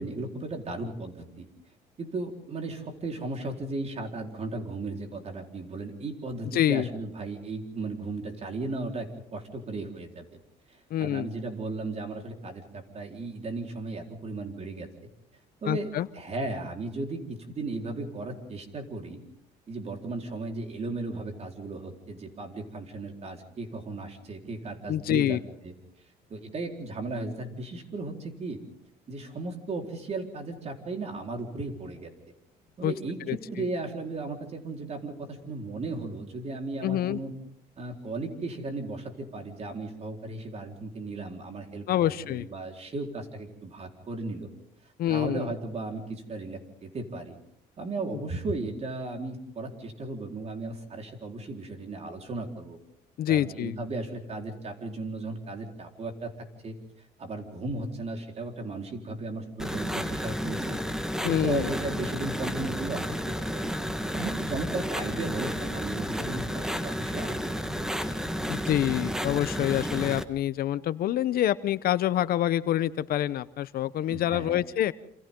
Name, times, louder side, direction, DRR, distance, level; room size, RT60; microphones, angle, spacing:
voice 1, 0.0-1.5 2.0-10.3 10.7-14.9 15.6-19.2 19.7-25.4 25.6-25.7 26.3-28.6 29.1-32.1 32.8-37.3 37.8-44.5 45.1-47.4 47.8-52.8 53.3-56.7 57.2-60.8 61.2-63.7 64.1-68.0 68.6-68.7 74.1-74.6, right 3 dB, 40° right, 3 dB, 4.3 m, -36 dB
voice 2, 6.5-6.9 10.9-11.3 15.7-16.1 24.9-25.4 32.8-32.9 33.3-33.4 36.8-37.2 41.9-42.5 45.0-45.5 48.1-48.2 53.2-53.8 61.2-61.7 68.5-74.9, left 12 dB, 65° left, 15 dB, 0.8 m, -26 dB
sound 1, 59.6-70.2, equal, 5° right, 1.5 m, -32 dB
28.5 x 27.5 x 3.8 m, 0.75 s
cardioid pair, 110°, 17 cm